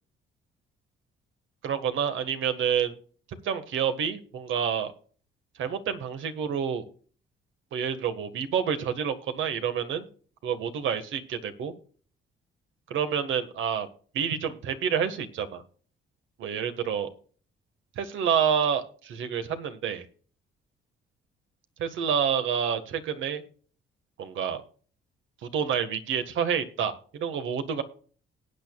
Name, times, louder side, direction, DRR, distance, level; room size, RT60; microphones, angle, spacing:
voice 1, 1.6-2.9 3.4-4.9 5.6-6.8 7.7-10.1 10.4-11.7 12.9-13.9 14.1-15.6 16.4-17.1 17.9-20.0 21.8-23.4 24.2-24.6 25.4-27.8, right 7 dB, 80° right, 9 dB, 1.7 m, -28 dB
19.0 x 8.9 x 2.4 m, 0.42 s
cardioid pair, 90°, 20 cm